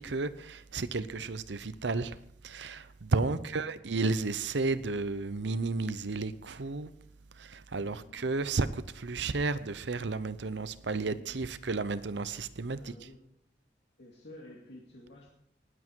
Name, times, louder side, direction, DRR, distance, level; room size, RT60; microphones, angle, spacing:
voice 1, 0.0-6.9 7.3-12.9, right 3 dB, 70° right, 0.7 m, -32 dB
voice 2, 3.2-4.0 7.8-8.3 10.8-11.3 12.7-13.2 14.0-15.3, left 1 dB, 65° left, 2.3 m, -52 dB
19.0 x 8.1 x 4.6 m
head